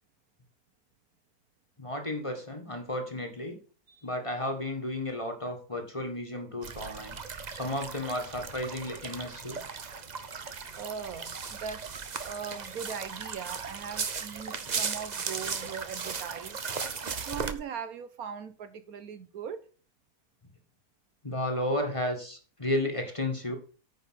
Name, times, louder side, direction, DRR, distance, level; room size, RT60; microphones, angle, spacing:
voice 1, 1.8-3.6 4.0-7.2 7.5-9.6 21.2-23.6, left 1 dB, 20° left, 1.5 m, -33 dB
sound 1, 6.6-17.5, right 5 dB, 40° right, 0.6 m, -37 dB
voice 2, 10.7-16.6 17.0-19.6, right 7 dB, 70° right, 1.3 m, -40 dB
9.3 x 5.1 x 6.4 m
omnidirectional pair, 1.7 m